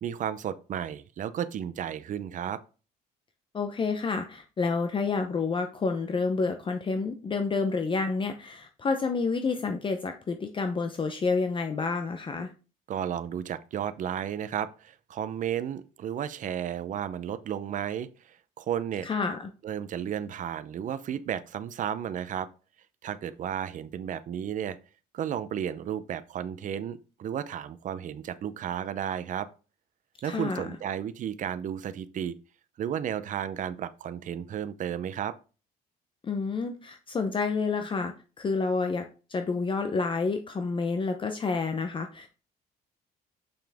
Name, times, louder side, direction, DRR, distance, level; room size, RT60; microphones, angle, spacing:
voice 1, 0.0-2.6 12.9-19.1 19.6-22.5 23.0-24.8 25.1-29.5 30.2-32.4 32.8-35.3, right 9 dB, 50° right, 0.7 m, -33 dB
voice 2, 3.5-12.5 19.0-19.5 30.2-30.7 36.2-39.0 39.3-42.3, left 4 dB, 30° left, 0.8 m, -29 dB
6.9 x 5.7 x 3.5 m
cardioid pair, 110°, 17 cm